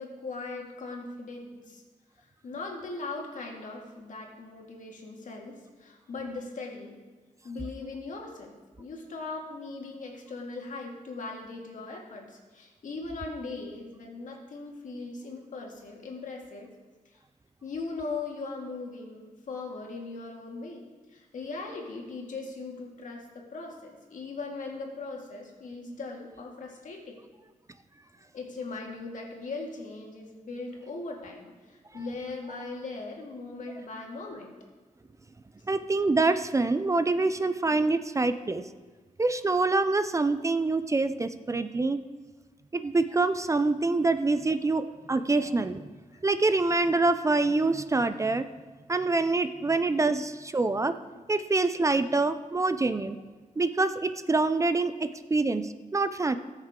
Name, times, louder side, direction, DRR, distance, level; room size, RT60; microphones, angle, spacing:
voice 1, 0.0-1.8 2.2-7.0 7.4-16.7 17.6-20.8 21.1-27.2 28.3-34.5 46.1-46.2 47.2-47.3, left 3 dB, 75° left, 0 dB, 2.1 m, -39 dB
voice 2, 35.7-38.6 39.2-42.0 42.7-45.8 46.2-48.5 48.9-50.9 51.3-53.2 53.6-56.4, right 3 dB, 25° right, 11 dB, 0.4 m, -26 dB
19.5 x 6.5 x 3.7 m, 1.3 s
wide cardioid pair, 125°, 13 cm